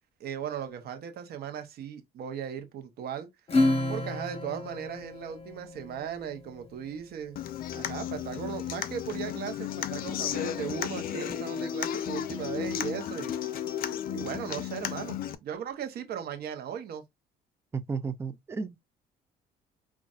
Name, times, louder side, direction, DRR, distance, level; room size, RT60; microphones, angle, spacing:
voice 1, 0.2-3.3 3.9-7.4 7.7-13.3 14.1-17.0, right 8 dB, 65° right, 0.9 m, -37 dB
Acoustic guitar / Strum, 3.5-6.4, left 2 dB, 35° left, 1.1 m, -29 dB
Human voice / Acoustic guitar, 7.4-15.3, left 10 dB, 60° left, 0.5 m, -34 dB
voice 2, 17.9-18.8, right 4 dB, 15° right, 0.4 m, -34 dB
5.2 x 2.5 x 2.4 m
cardioid pair, 110°, 17 cm